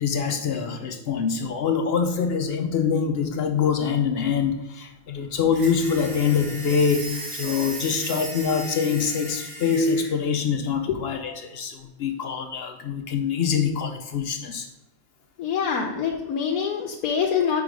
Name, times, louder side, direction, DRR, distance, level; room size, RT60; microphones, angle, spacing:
voice 1, 0.0-14.7, left 6 dB, 60° left, 4 dB, 0.6 m, -24 dB
sound 1, 5.5-10.1, right 2 dB, 45° right, 1.8 m, -36 dB
voice 2, 15.4-17.6, left 7 dB, 90° left, 1 dB, 1.2 m, -25 dB
4.8 x 4.8 x 5.1 m, 1.0 s
omnidirectional pair, 1.5 m